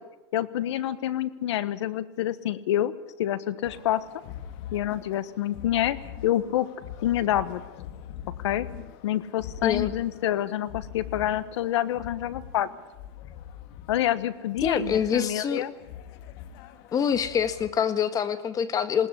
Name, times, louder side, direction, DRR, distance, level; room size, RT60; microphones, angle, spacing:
voice 1, 0.3-2.9 3.2-4.0 4.7-6.7 7.0-7.6 8.4-8.7 9.0-12.7 13.9-15.7, left 12 dB, 85° left, 15 dB, 1.4 m, -27 dB
sound 1, 3.6-17.7, left 10 dB, 55° left, 1.9 m, -43 dB
voice 2, 14.6-15.6 16.9-19.1, left 7 dB, 25° left, 11 dB, 1.6 m, -25 dB
20.5 x 19.0 x 9.9 m, 1.0 s
supercardioid pair, 140°, 14 cm